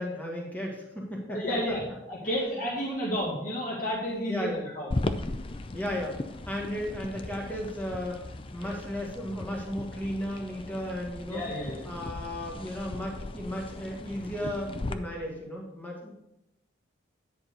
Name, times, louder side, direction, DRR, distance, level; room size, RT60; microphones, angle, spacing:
voice 1, 0.0-1.4 1.7-1.8 2.2-2.3 4.3-4.7 5.7-6.2 6.5-8.2 8.5-11.5 11.8-16.1, equal, 10° left, -2 dB, 1.6 m, -34 dB
voice 2, 1.3-1.8 2.1-5.0 8.6-8.7 11.3-11.9, equal, 45° left, -4 dB, 1.8 m, -31 dB
sound 1, 4.9-14.9, left 2 dB, 30° left, 0.5 m, -37 dB
10.0 x 4.5 x 6.7 m, 0.88 s
head